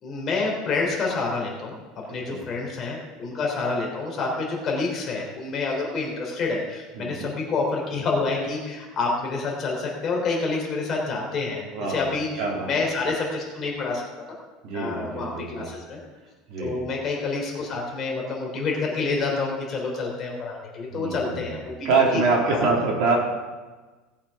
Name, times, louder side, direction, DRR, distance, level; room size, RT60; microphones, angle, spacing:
voice 1, 0.0-1.8 2.1-14.4 14.7-16.0 16.6-22.7, left 3 dB, 25° left, -2 dB, 3.4 m, -28 dB
voice 2, 7.0-7.3 11.7-12.7 14.6-15.7 16.5-16.8 20.9-21.6 21.8-23.2, right 3 dB, 55° right, -2 dB, 3.2 m, -25 dB
17.5 x 7.1 x 5.8 m, 1.3 s
cardioid pair, 170°, 0 cm